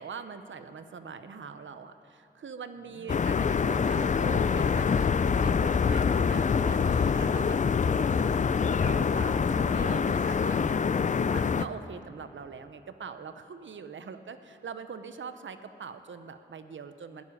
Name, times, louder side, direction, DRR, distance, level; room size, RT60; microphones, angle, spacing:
voice 1, 0.0-8.3 8.7-10.8 11.2-17.2, right 6 dB, 75° right, 10 dB, 0.7 m, -43 dB
sound 1, 2.7-11.5, left 3 dB, 80° left, 1.2 m, -51 dB
sound 2, 3.1-11.6, left 6 dB, 40° left, 0.4 m, -25 dB
16.5 x 7.2 x 9.8 m, 2.7 s
wide cardioid pair, 100°, 20 cm